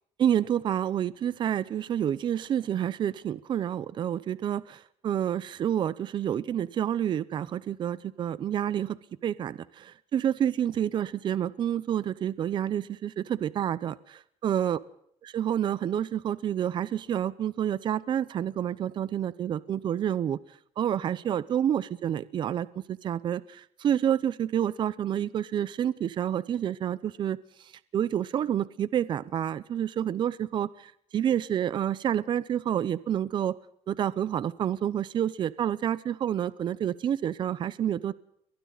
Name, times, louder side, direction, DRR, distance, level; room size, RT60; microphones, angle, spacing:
voice 1, 0.2-9.0 9.2-14.8 15.2-20.4 20.8-27.4 27.9-33.6 33.9-38.1, right 10 dB, 45° right, 17 dB, 0.7 m, -29 dB
30.0 x 23.0 x 4.1 m, 0.69 s
cardioid pair, 165°, 11 cm